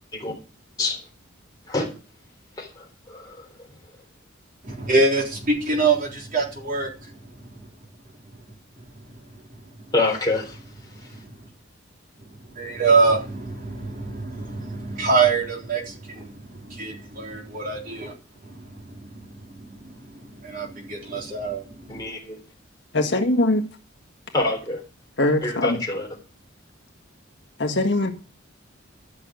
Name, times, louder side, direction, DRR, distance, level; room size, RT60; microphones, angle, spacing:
voice 1, 4.7-6.9 12.6-16.3 16.6-18.1 18.4-18.8 19.1-19.2 19.7-19.9 20.4-21.9, right 3 dB, 40° right, 3.8 m, -24 dB
voice 2, 9.9-10.6 21.9-22.4 24.3-24.8 25.4-26.1, left 2 dB, 20° left, 3.8 m, -25 dB
voice 3, 22.9-23.6 25.2-25.8 27.6-28.1, left 2 dB, 55° left, 1.8 m, -21 dB
13.0 x 6.5 x 8.3 m
head